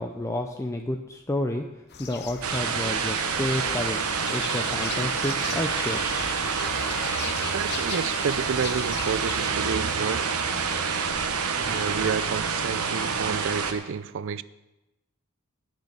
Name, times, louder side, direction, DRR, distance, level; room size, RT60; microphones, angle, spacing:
voice 1, 0.0-6.3, left 1 dB, 15° left, 0.5 m, -31 dB
sound 1, 1.9-9.5, left 7 dB, 50° left, 0.8 m, -39 dB
sound 2, 2.4-13.7, right 5 dB, 85° right, 1.0 m, -27 dB
voice 2, 7.5-10.3 11.6-14.4, right 6 dB, 60° right, 0.4 m, -30 dB
10.5 x 6.5 x 8.0 m
head